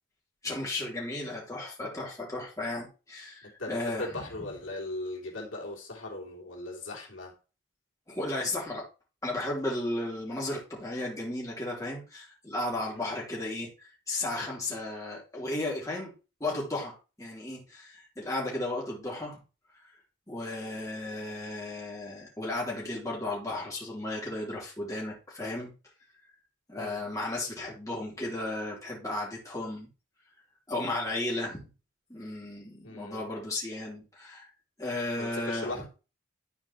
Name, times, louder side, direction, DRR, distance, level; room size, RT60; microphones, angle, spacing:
voice 1, 0.4-4.2 8.1-8.8 9.2-16.1 16.4-19.4 20.3-25.7 26.7-29.9 30.7-31.7 32.1-34.5 34.8-35.7, left 2 dB, 15° left, -4 dB, 3.1 m, -34 dB
voice 2, 3.4-7.3 12.9-13.1 26.7-27.0 32.8-33.3 35.2-35.9, left 2 dB, 80° left, -2 dB, 3.0 m, -38 dB
11.0 x 4.5 x 4.3 m, 0.32 s
head